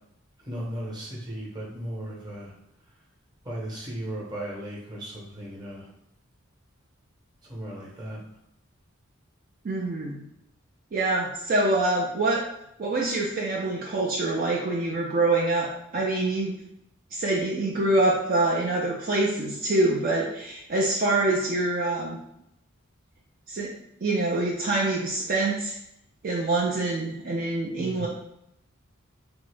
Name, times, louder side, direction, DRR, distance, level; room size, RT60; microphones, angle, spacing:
voice 1, 0.5-2.5 3.4-5.9 7.5-8.2 27.8-28.1, right 1 dB, 20° right, -5 dB, 0.8 m, -36 dB
voice 2, 9.6-10.2 10.9-12.4 12.8-16.5 17.1-22.2 23.5-23.7 24.0-25.8 26.2-28.1, right 2 dB, 45° right, -3 dB, 0.4 m, -25 dB
3.5 x 2.0 x 3.3 m, 0.78 s
head